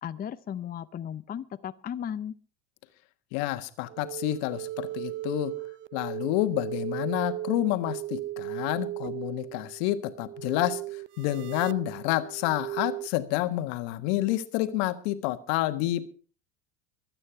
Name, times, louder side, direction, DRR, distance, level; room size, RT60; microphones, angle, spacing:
voice 1, 0.0-2.4, left 9 dB, 25° left, 0.6 m, -35 dB
voice 2, 3.3-5.6 5.9-16.1, left 15 dB, 65° left, 1.5 m, -29 dB
sound 1, 3.9-13.1, right 13 dB, 35° right, 0.6 m, -37 dB
22.5 x 8.9 x 4.7 m
hypercardioid pair, 80°, 35 cm